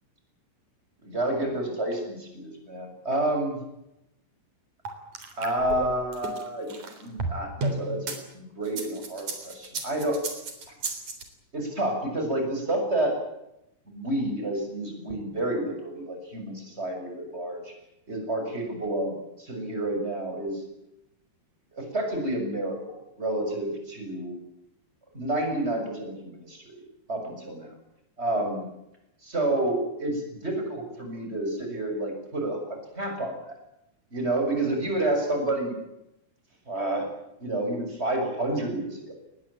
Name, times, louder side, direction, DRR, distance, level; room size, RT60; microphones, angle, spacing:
voice 1, 1.0-3.6 5.4-6.7 7.0-10.2 11.5-13.2 13.9-17.7 18.1-20.6 21.7-24.4 25.1-26.8 27.1-27.6 28.2-28.7 29.2-33.5 34.1-35.8 36.7-37.1 37.4-39.1, right 1 dB, 15° right, 4 dB, 7.1 m, -29 dB
sound 1, 4.9-8.2 8.7-11.2, right 3 dB, 55° right, 5.0 m, -33 dB
22.5 x 20.5 x 8.8 m, 0.85 s
omnidirectional pair, 4.0 m